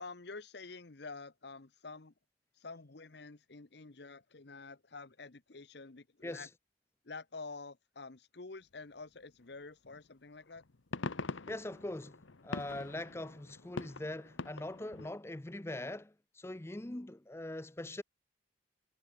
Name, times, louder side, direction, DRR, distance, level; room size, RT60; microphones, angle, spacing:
voice 1, 0.0-2.1 2.5-6.5 7.0-10.6, left 3 dB, 55° left, 1.0 m, -48 dB
sound 1, 9.8-10.0 10.5-15.1, left 3 dB, 80° left, 1.1 m, -43 dB
voice 2, 11.5-18.0, left 1 dB, 15° left, 0.5 m, -42 dB
head